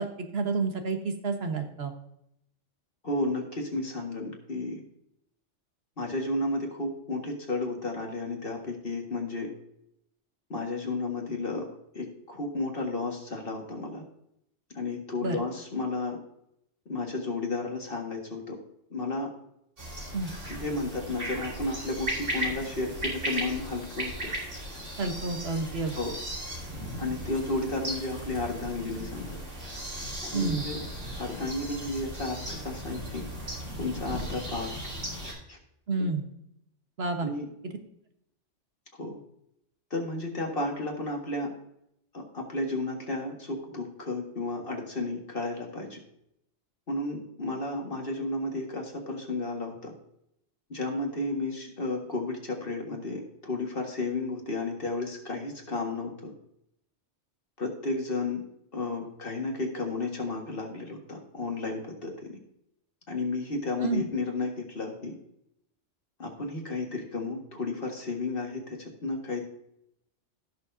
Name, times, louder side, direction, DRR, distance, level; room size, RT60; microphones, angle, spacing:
voice 1, 0.0-1.9 15.2-15.4 20.1-20.3 25.0-25.9 30.3-30.6 35.9-36.2 37.0-37.3 63.8-64.0, right 4 dB, 55° right, 5 dB, 1.5 m, -29 dB
voice 2, 3.0-4.8 6.0-9.5 10.5-11.7 11.9-14.0 14.7-16.2 16.9-18.6 18.9-19.3 20.5-24.3 26.0-26.2 27.0-29.4 30.2-30.8 31.2-33.2 33.8-34.7 35.2-35.6 36.0-36.1 37.2-37.5 39.0-39.2 39.9-41.5 42.1-46.0 46.9-49.9 50.7-56.3 57.6-58.4 58.7-62.4 63.1-65.1 66.2-69.5, left 2 dB, 50° left, 1 dB, 2.0 m, -33 dB
sound 1, 19.8-35.3, right 1 dB, 80° right, 3.1 m, -36 dB
16.0 x 6.7 x 2.7 m, 0.77 s
omnidirectional pair, 1.2 m